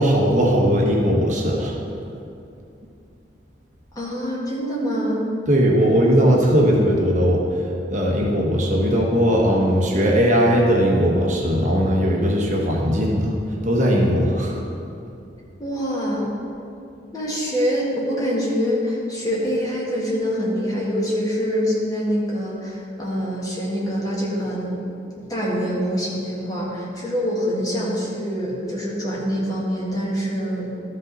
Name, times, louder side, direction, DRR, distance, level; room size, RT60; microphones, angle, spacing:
voice 1, 0.0-1.8 5.5-13.3 13.6-14.6, equal, 45° right, -2 dB, 1.1 m, -19 dB
voice 2, 3.9-5.2 15.6-16.3 17.1-24.8 25.3-30.7, equal, 20° left, -5 dB, 1.7 m, -25 dB
13.0 x 5.4 x 4.0 m, 2.6 s
head